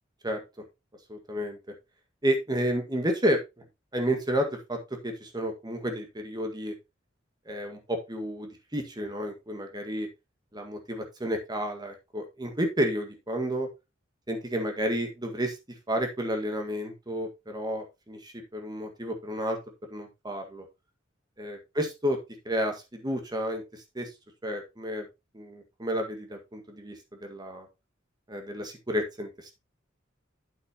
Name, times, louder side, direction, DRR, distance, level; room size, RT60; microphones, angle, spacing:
voice 1, 1.1-1.6 2.2-3.4 3.9-4.8 5.0-6.7 7.5-10.1 10.5-13.7 14.3-15.6 15.9-19.6 19.9-20.6 21.4-22.2 22.5-23.6 24.0-24.1 24.4-25.1 25.3-27.0 27.2-27.7 28.3-29.3, equal, 20° right, 4 dB, 1.8 m, -31 dB
9.1 x 7.7 x 2.9 m, 0.24 s
head